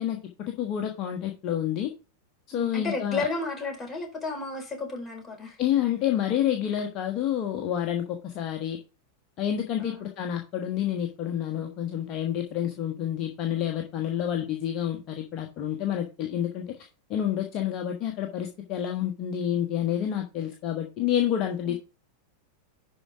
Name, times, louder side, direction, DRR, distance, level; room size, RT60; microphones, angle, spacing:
voice 1, 0.0-1.9 2.5-3.3 5.6-8.8 9.4-16.8 17.1-21.7, left 10 dB, 35° left, 1.3 m, -29 dB
voice 2, 2.5-5.6 9.8-10.1 21.7-21.8, left 3 dB, 15° left, 4.5 m, -33 dB
11.0 x 4.9 x 3.5 m
figure-of-eight pair, 90°, 0 cm